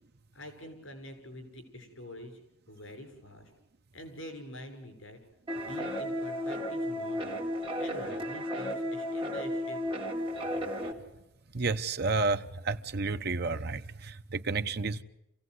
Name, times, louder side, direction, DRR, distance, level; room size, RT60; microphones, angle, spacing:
voice 1, 0.3-2.4 2.7-3.5 3.9-5.2 5.5-7.4 7.8-9.8, left 1 dB, 85° left, 6.8 m, -46 dB
sound 1, 5.5-10.9, equal, 25° right, 3.4 m, -34 dB
voice 2, 11.5-15.0, right 3 dB, 55° right, 0.9 m, -31 dB
27.0 x 17.0 x 9.6 m
head